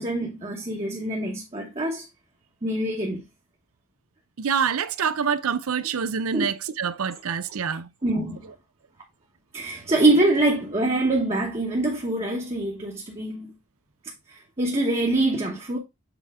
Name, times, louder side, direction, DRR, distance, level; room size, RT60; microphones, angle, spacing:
voice 1, 0.0-2.0 2.6-3.2 6.3-6.4 8.0-8.5 9.5-13.5 14.6-15.8, right 2 dB, 30° right, 1.0 m, -24 dB
voice 2, 4.4-7.9, right 7 dB, 85° right, 0.6 m, -26 dB
7.1 x 4.3 x 3.5 m
head